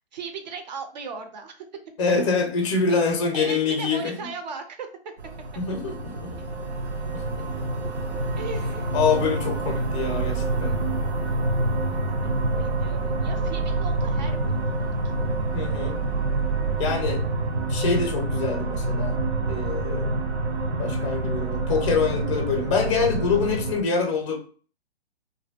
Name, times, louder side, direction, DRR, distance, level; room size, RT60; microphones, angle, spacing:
voice 1, 0.1-1.6 2.9-4.9 8.3-8.9 12.1-15.0, right 5 dB, 40° right, 6 dB, 0.5 m, -38 dB
voice 2, 2.0-4.3 5.6-6.4 7.1-7.5 8.9-10.8 15.5-16.0 16.8-17.2 17.7-19.2 19.5-20.2 20.8-24.4, left 5 dB, 30° left, 4 dB, 0.5 m, -25 dB
sound 1, 5.2-23.8, right 2 dB, 85° right, 0.7 m, -27 dB
2.6 x 2.1 x 2.3 m, 0.41 s
hypercardioid pair, 135°, 33 cm